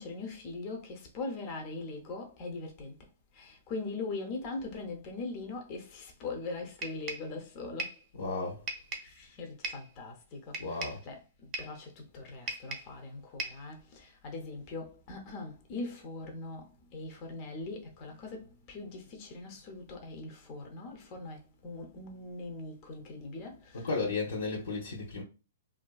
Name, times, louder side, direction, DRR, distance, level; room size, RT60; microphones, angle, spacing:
voice 1, 0.0-3.0 3.3-8.0 9.0-23.9, left 3 dB, 35° left, 0.6 m, -41 dB
sound 1, 6.8-7.3 7.8-8.1 8.7-9.1 9.6-9.9 10.5-11.0 11.5-11.8 12.5-13.0 13.4-13.7, right 3 dB, 30° right, 0.5 m, -38 dB
voice 2, 8.1-8.6 10.6-11.0 23.7-25.2, left 3 dB, 75° left, 0.7 m, -34 dB
2.6 x 2.5 x 2.3 m
hypercardioid pair, 140°, 0 cm